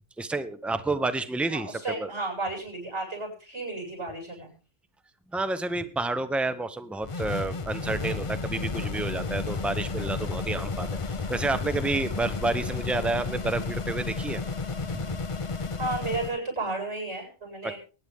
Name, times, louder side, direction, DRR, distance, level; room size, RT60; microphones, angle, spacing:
voice 1, 0.2-2.1 5.3-14.4 14.9-15.0 17.6-17.7, right 2 dB, ahead, 11 dB, 0.8 m, -30 dB
voice 2, 1.5-4.5 15.8-17.8, right 2 dB, 70° right, 0 dB, 7.9 m, -33 dB
sound 1, 7.0-16.4, left 4 dB, 30° left, 0.7 m, -32 dB
22.5 x 10.0 x 3.6 m, 0.36 s
omnidirectional pair, 1.2 m